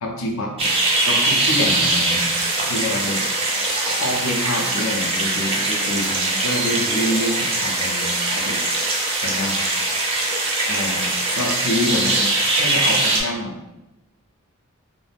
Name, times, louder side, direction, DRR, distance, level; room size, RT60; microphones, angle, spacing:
voice 1, 0.0-0.7 1.1-3.2 3.9-8.6 9.2-9.6 10.7-13.5, left 1 dB, 65° left, 0 dB, 0.4 m, -27 dB
sound 1, 0.6-13.2, right 2 dB, 25° right, 0.4 m, -22 dB
2.4 x 2.0 x 3.2 m, 0.97 s
head